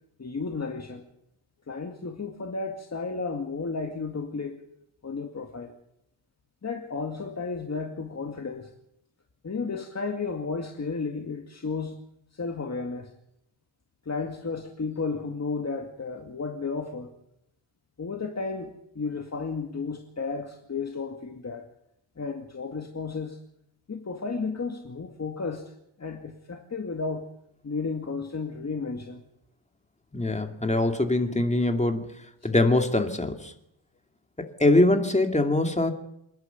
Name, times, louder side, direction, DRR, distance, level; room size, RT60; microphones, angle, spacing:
voice 1, 0.2-1.0 1.7-4.6 5.0-5.8 6.6-8.7 9.4-12.0 12.3-13.1 14.0-17.1 18.0-21.7 22.2-23.4 23.9-25.7 26.0-27.3 27.6-29.2 32.4-32.5, left 4 dB, 30° left, 3 dB, 2.2 m, -33 dB
voice 2, 30.1-32.0 32.4-33.5 34.4-35.9, left 2 dB, 15° left, 5 dB, 2.5 m, -23 dB
27.0 x 11.0 x 9.3 m, 0.79 s
wide cardioid pair, 120°, 48 cm